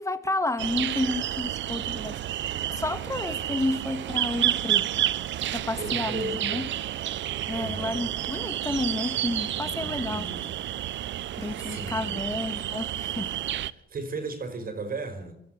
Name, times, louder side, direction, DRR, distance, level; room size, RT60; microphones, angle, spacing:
voice 1, 0.0-5.1 5.5-6.7 7.5-10.2 11.4-13.3, left 2 dB, 15° left, 10 dB, 2.2 m, -31 dB
sound 1, 0.6-13.7, right 12 dB, 70° right, 0.8 m, -30 dB
voice 2, 5.8-6.7 7.5-8.1 9.5-10.6 11.5-12.2 13.7-15.3, right 3 dB, 45° right, 8 dB, 4.8 m, -36 dB
25.0 x 14.0 x 9.1 m, 0.77 s
cardioid pair, 90°, 20 cm